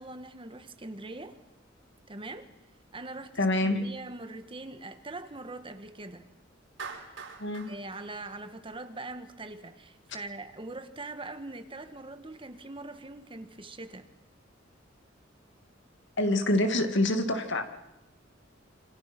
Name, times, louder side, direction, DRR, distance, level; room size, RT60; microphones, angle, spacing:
voice 1, 0.0-1.4 2.1-2.5 2.9-6.3 7.7-14.1, right 2 dB, 25° right, 1.6 m, -42 dB
voice 2, 3.4-3.9 7.4-7.7 16.2-17.7, left 1 dB, 65° left, 2.2 m, -26 dB
Clapping, 6.8-9.1, right 5 dB, 80° right, 5.2 m, -44 dB
27.5 x 25.5 x 6.1 m
head